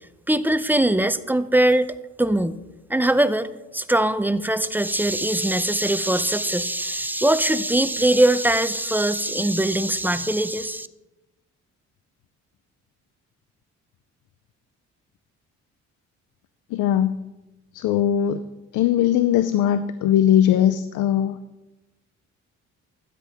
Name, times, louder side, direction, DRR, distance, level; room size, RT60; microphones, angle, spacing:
voice 1, 0.3-2.6 2.9-10.9, right 1 dB, 5° right, 13 dB, 0.5 m, -21 dB
voice 2, 16.7-17.2 17.7-18.4 18.7-21.4, left 10 dB, 85° left, 12 dB, 0.5 m, -20 dB
13.0 x 10.0 x 3.5 m, 1.0 s
cardioid pair, 90°, 30 cm